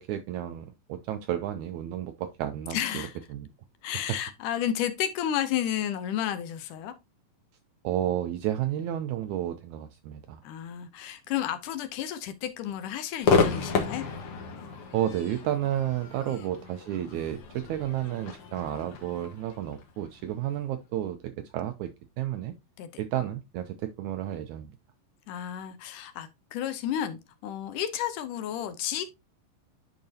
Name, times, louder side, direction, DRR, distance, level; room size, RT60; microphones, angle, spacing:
voice 1, 0.0-3.0 3.3-3.5 7.8-10.4 14.9-22.5 23.0-24.7, right 11 dB, 85° right, 1.7 m, -32 dB
voice 2, 2.7-3.2 3.8-6.9 10.4-14.1 22.8-22.9 25.3-29.1, left 10 dB, 75° left, 2.2 m, -32 dB
Crowd / Fireworks, 13.2-20.6, left 5 dB, 55° left, 1.7 m, -31 dB
10.5 x 4.7 x 2.7 m
omnidirectional pair, 3.9 m